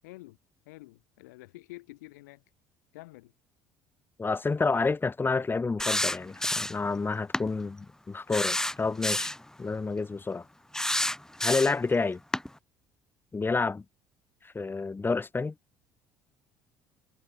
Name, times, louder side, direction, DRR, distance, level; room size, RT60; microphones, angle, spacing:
voice 1, 0.0-0.4 0.7-2.4 2.9-3.3, left 21 dB, 80° left, 7.0 m, -48 dB
voice 2, 4.2-9.3 9.6-10.5 11.4-12.2 13.3-13.8 14.4-15.5, left 4 dB, 20° left, 2.2 m, -29 dB
sound 1, 5.8-6.9 7.3-7.5 8.3-9.4 10.7-11.9 12.3-12.5, left 1 dB, 5° left, 2.1 m, -29 dB
hypercardioid pair, 65°, 9 cm